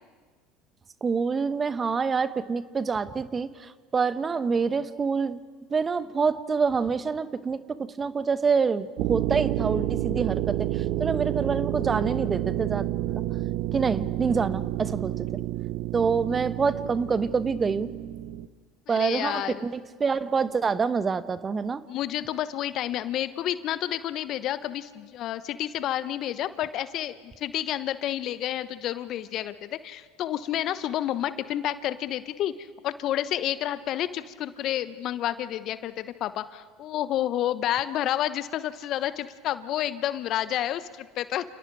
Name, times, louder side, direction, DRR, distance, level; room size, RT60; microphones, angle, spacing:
voice 1, 1.0-3.5 3.9-5.4 5.7-7.6 8.0-10.7 11.0-13.2 13.7-15.1 15.9-17.9 18.9-21.8, right 5 dB, 30° right, 14 dB, 1.1 m, -26 dB
sound 1, 9.0-18.5, right 14 dB, 65° right, 0.9 m, -29 dB
voice 2, 18.9-19.7 21.9-41.4, left 12 dB, 55° left, 13 dB, 1.1 m, -30 dB
29.5 x 29.5 x 4.8 m, 1.4 s
hypercardioid pair, 70°, 0 cm